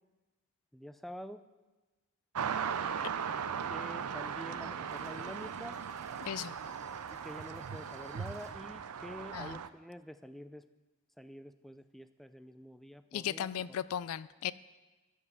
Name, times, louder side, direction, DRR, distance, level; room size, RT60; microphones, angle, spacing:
voice 1, 0.7-1.4 3.7-5.8 7.1-10.7 11.2-13.5, equal, ahead, 10 dB, 0.4 m, -47 dB
sound 1, 2.3-9.7, right 7 dB, 85° right, 0.5 m, -38 dB
sound 2, 4.9-8.8, right 3 dB, 30° right, 1.4 m, -59 dB
voice 2, 6.2-6.6 9.3-9.6 13.1-14.5, left 10 dB, 70° left, 17 dB, 0.4 m, -36 dB
13.5 x 5.5 x 8.1 m, 1.2 s
head